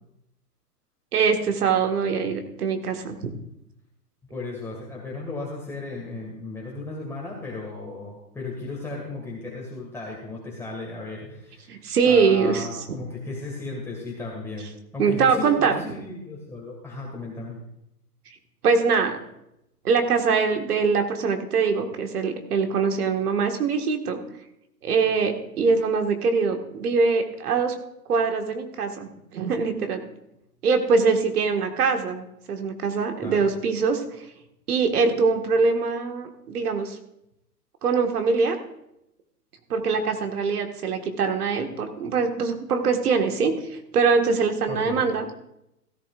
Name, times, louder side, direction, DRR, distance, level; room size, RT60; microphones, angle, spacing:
voice 1, 1.1-3.2 11.7-12.7 15.0-15.7 18.6-19.2 19.8-24.2 24.8-27.7 28.1-30.1 30.6-34.0 34.7-37.0 37.8-38.6 39.7-45.3, right 5 dB, 65° right, 5 dB, 1.9 m, -23 dB
voice 2, 4.3-17.6 33.2-33.4 44.7-45.0, left 3 dB, 5° left, -4 dB, 1.9 m, -35 dB
16.0 x 11.0 x 2.5 m, 0.82 s
hypercardioid pair, 120°, 48 cm